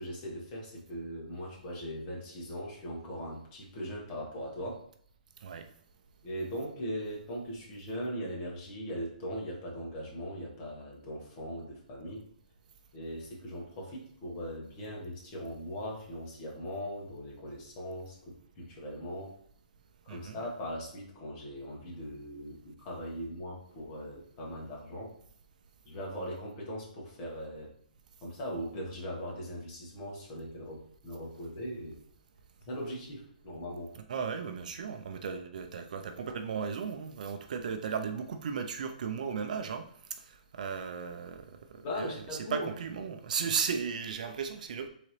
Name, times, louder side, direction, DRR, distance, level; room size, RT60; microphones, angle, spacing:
voice 1, 0.0-4.8 6.2-12.2 12.9-19.3 20.0-25.1 25.8-27.7 28.2-32.0 32.7-33.9 41.8-42.7, equal, 25° left, 1.4 m, -40 dB
voice 2, 20.1-20.4 34.1-39.8 40.1-44.9, right 6 dB, 55° right, 0.5 m, -36 dB
4.2 x 3.8 x 3.2 m
hypercardioid pair, 155°, 5 cm